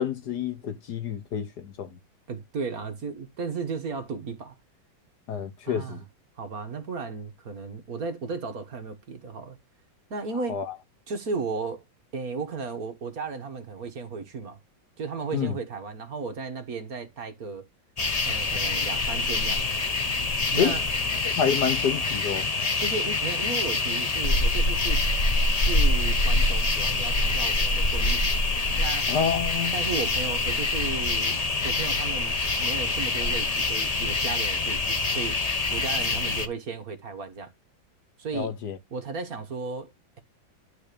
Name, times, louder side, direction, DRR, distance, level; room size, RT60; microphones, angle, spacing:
voice 1, 0.0-1.9 5.3-6.0 10.5-10.7 15.3-15.5 20.6-20.7 21.2-22.5 29.1-29.7 38.3-38.8, left 7 dB, 60° left, 1.4 m, -28 dB
voice 2, 2.3-4.5 5.6-6.0 6.4-9.6 10.1-10.6 11.1-11.8 12.1-14.6 15.0-17.7 18.3-19.6 20.5-20.8 22.8-25.0 25.6-28.3 28.8-29.1 29.7-31.4 31.6-35.4 35.7-37.5 38.2-38.5 38.9-39.9, right 4 dB, 50° right, 1.7 m, -34 dB
sound 1, 18.0-36.5, left 2 dB, 35° left, 0.6 m, -25 dB
11.5 x 3.9 x 6.7 m
omnidirectional pair, 2.1 m